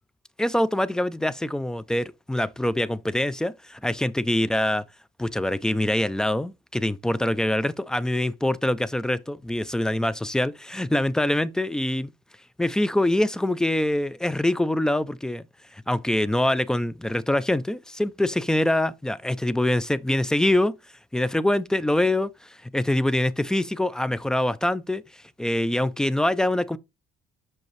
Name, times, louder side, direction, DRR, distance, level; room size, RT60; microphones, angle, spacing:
voice 1, 0.4-4.8 5.2-12.1 12.6-15.4 15.7-20.7 21.1-26.8, left 1 dB, 5° left, 0.3 m, -24 dB
5.8 x 5.2 x 3.1 m
cardioid pair, 110°, 17 cm